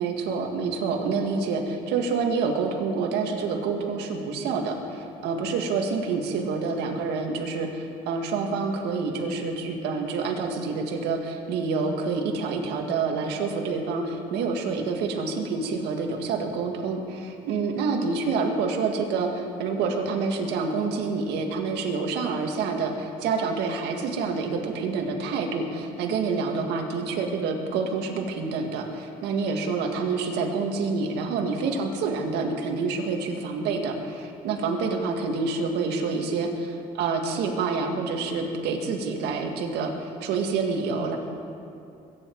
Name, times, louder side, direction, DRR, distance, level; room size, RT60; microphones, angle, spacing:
voice 1, 0.0-41.2, right 4 dB, 85° right, 3 dB, 1.8 m, -27 dB
22.0 x 9.9 x 4.6 m, 2.6 s
cardioid pair, 110°, 17 cm